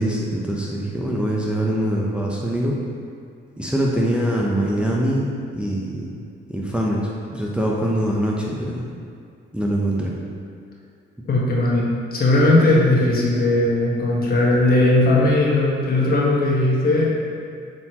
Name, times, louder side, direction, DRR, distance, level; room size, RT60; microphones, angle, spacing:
voice 1, 0.0-2.8 3.6-5.3 5.5-6.1 6.5-8.8 9.5-10.1, right 1 dB, 5° right, -4 dB, 0.8 m, -23 dB
voice 2, 11.3-17.1, left 2 dB, 50° left, -4 dB, 1.4 m, -18 dB
7.6 x 4.2 x 3.0 m, 2.4 s
cardioid pair, 90°, 20 cm